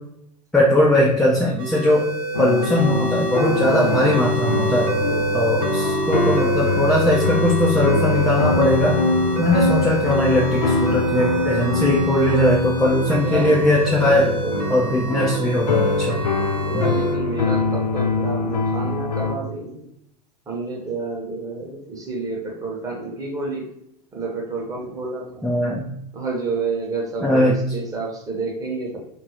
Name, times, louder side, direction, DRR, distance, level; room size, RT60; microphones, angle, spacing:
voice 1, 0.5-2.1 2.4-4.9 5.3-8.9 9.4-14.3 14.7-16.2 16.7-16.9 25.4-25.9 27.2-27.6, left 1 dB, ahead, -5 dB, 0.5 m, -19 dB
sound 1, 1.6-17.1, right 3 dB, 40° right, 0.7 m, -28 dB
sound 2, 2.3-19.4, left 3 dB, 80° left, 0.4 m, -23 dB
voice 2, 4.9-5.4 11.2-11.4 13.1-13.6 14.1-14.9 16.4-19.8 20.5-23.7 24.1-25.5 26.1-29.0, right 3 dB, 15° right, -1 dB, 0.9 m, -29 dB
3.7 x 2.7 x 2.8 m, 0.76 s
figure-of-eight pair, 90°, 21 cm